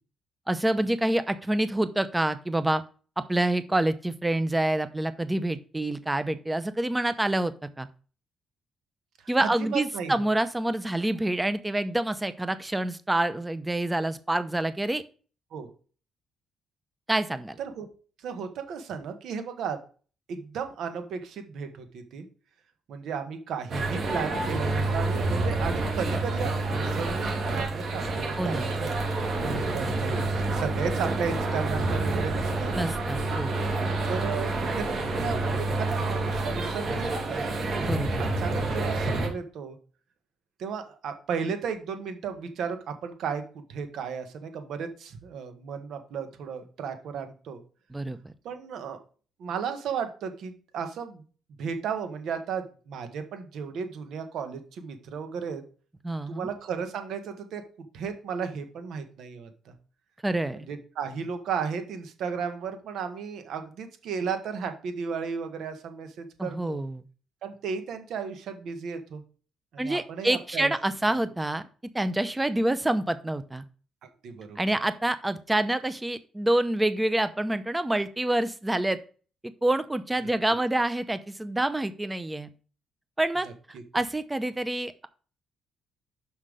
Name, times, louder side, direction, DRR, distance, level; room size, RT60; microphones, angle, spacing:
voice 1, 0.5-2.8 3.2-7.9 9.3-15.0 17.1-17.6 28.4-28.7 32.7-33.6 37.8-38.1 47.9-48.3 56.0-56.5 60.2-60.7 66.4-67.0 69.8-71.6 71.9-73.6 74.6-79.0 79.4-82.5 83.2-83.5 83.9-85.1, right 1 dB, 15° right, 13 dB, 0.7 m, -27 dB
voice 2, 9.2-10.3 15.5-15.7 17.6-17.9 18.2-19.8 20.3-22.3 22.9-28.9 29.2-32.7 34.0-37.4 37.7-38.0 38.4-39.8 40.6-47.6 48.4-49.0 49.4-51.2 51.6-55.6 56.3-59.7 60.5-66.8 67.4-69.2 69.7-70.7 74.0-74.8 83.4-83.8, right 6 dB, 75° right, 8 dB, 1.4 m, -34 dB
sound 1, 23.7-39.3, right 2 dB, 55° right, 2.5 m, -28 dB
5.9 x 5.5 x 5.0 m, 0.39 s
cardioid pair, 90°, 0 cm